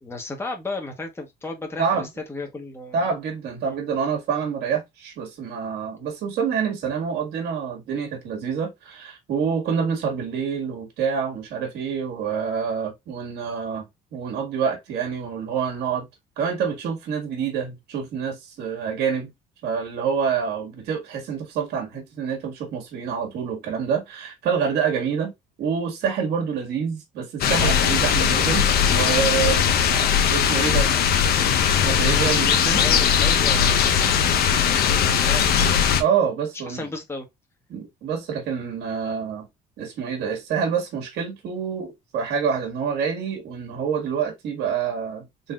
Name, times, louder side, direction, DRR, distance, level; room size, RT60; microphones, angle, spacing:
voice 1, 0.0-3.0 3.6-3.8 32.8-35.6 36.7-37.3, left 2 dB, 15° left, 1.2 m, -34 dB
voice 2, 2.9-16.1 16.4-19.3 19.6-25.3 25.6-29.7 30.3-30.9 31.8-32.8 36.0-36.9 37.7-39.5 39.8-45.5, right 6 dB, 75° right, 1.9 m, -27 dB
sound 1, 27.4-36.0, left 8 dB, 65° left, 0.9 m, -19 dB
4.0 x 3.6 x 2.4 m
cardioid pair, 110°, 17 cm